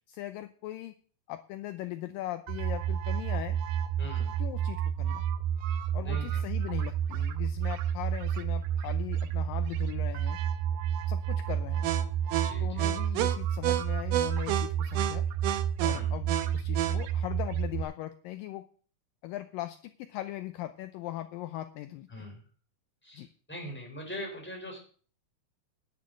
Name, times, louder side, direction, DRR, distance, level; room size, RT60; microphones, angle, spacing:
voice 1, 0.1-1.0 1.3-3.6 4.4-5.2 5.9-10.4 11.1-11.9 12.6-15.3 15.8-18.7 19.2-22.1 23.1-23.3, left 15 dB, 80° left, 10 dB, 2.2 m, -39 dB
sound 1, 2.5-17.8, right 9 dB, 90° right, 2.9 m, -29 dB
voice 2, 4.0-4.4 5.9-6.4 12.4-12.9 15.9-16.1 22.1-22.4 23.0-24.8, equal, 5° left, 1 dB, 3.8 m, -42 dB
10.5 x 7.1 x 7.8 m, 0.44 s
omnidirectional pair, 4.3 m